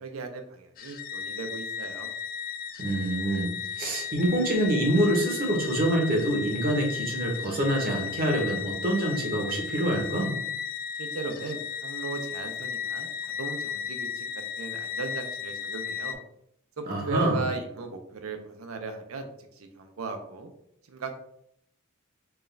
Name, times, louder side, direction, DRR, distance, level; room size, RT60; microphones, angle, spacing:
voice 1, 0.0-2.1 11.0-16.2 16.8-20.5 20.9-21.2, right 3 dB, 70° right, 6 dB, 0.6 m, -37 dB
sound 1, 0.8-16.1, left 7 dB, 40° left, 0.3 m, -35 dB
voice 2, 2.8-10.4 16.9-17.4, right 1 dB, 45° right, 0 dB, 0.9 m, -26 dB
4.6 x 2.4 x 3.2 m, 0.74 s
head